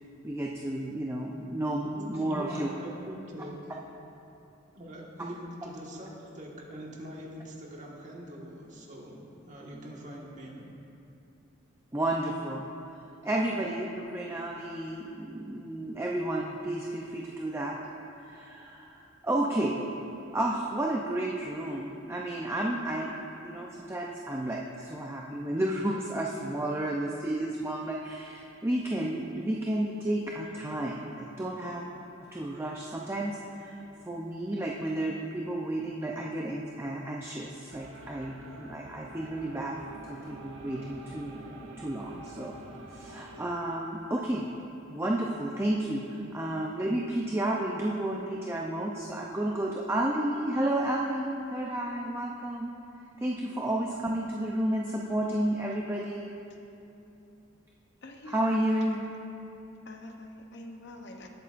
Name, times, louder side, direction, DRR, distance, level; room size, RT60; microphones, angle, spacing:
voice 1, 0.2-2.7 11.9-12.7 13.2-17.8 18.2-19.8 20.3-23.1 23.4-31.8 32.3-33.8 34.0-39.8 40.1-41.4 41.8-42.6 42.9-44.5 44.9-52.7 53.2-56.3 58.3-59.0, right 1 dB, 15° right, -2 dB, 0.5 m, -31 dB
voice 2, 1.9-3.8 4.7-10.8, equal, 35° right, -3 dB, 1.6 m, -43 dB
sound 1, 37.7-43.5, right 2 dB, 85° right, 1.0 m, -46 dB
voice 3, 58.0-59.0 59.8-61.3, left 2 dB, 55° left, 3 dB, 0.8 m, -46 dB
18.0 x 8.4 x 2.5 m, 2.8 s
head